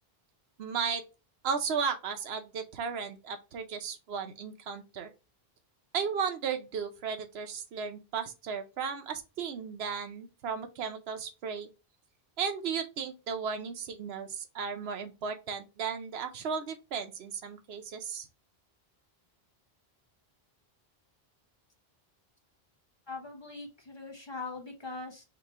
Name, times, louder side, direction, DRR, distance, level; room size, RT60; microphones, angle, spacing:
voice 1, 0.6-1.0 1.4-5.1 5.9-11.7 12.4-18.3, right 6 dB, 80° right, 0.9 m, -35 dB
voice 2, 23.1-25.2, left 3 dB, 30° left, 0.9 m, -41 dB
3.0 x 2.9 x 4.4 m
omnidirectional pair, 1.0 m